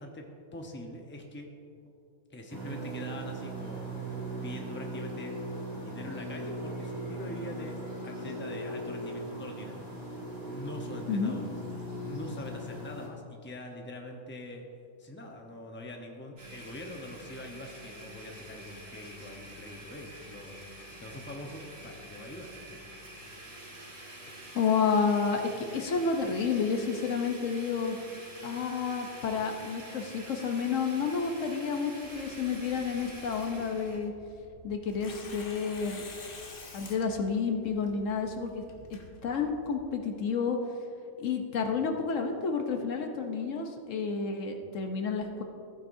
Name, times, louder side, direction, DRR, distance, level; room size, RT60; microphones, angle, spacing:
voice 1, 0.0-1.5 2.3-4.2 4.4-5.4 5.8-9.8 10.4-11.6 12.0-14.7 15.0-20.6 21.0-22.8 38.7-38.9, left 1 dB, 10° left, 1 dB, 0.8 m, -43 dB
sound 1, 2.5-13.1, right 1 dB, 30° left, 1.9 m, -39 dB
voice 2, 11.1-11.4 24.5-28.0 28.4-34.1 34.6-36.0 36.7-38.6 38.9-40.6 41.2-45.4, left 5 dB, 80° left, 4 dB, 1.2 m, -30 dB
Domestic sounds home sounds, 16.4-34.0, right 1 dB, 85° right, 2.3 m, -47 dB
Tearing, 32.0-39.8, left 2 dB, 45° left, 1.2 m, -50 dB
14.5 x 9.1 x 2.7 m, 2.4 s
omnidirectional pair, 1.3 m